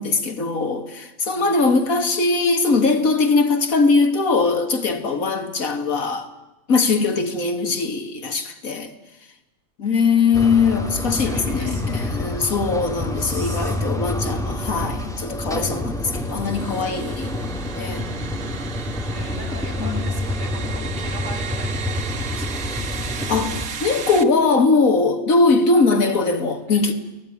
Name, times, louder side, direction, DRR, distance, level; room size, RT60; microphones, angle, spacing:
voice 1, 0.0-6.3 6.7-8.9 9.8-17.3 17.7-18.0 19.2-19.4 19.8-20.0 23.3-26.9, left 4 dB, 90° left, 2.3 m, -21 dB
voice 2, 1.3-1.9 9.8-10.7 11.0-12.5 13.2-15.1 18.9-22.7 25.8-26.2 26.7-26.8, right 1 dB, 35° right, 8.3 m, -40 dB
sound 1, 10.3-23.7, left 1 dB, ahead, 2.3 m, -28 dB
sound 2, 16.2-24.2, right 6 dB, 85° right, 1.8 m, -35 dB
29.0 x 19.0 x 9.7 m
omnidirectional pair, 1.4 m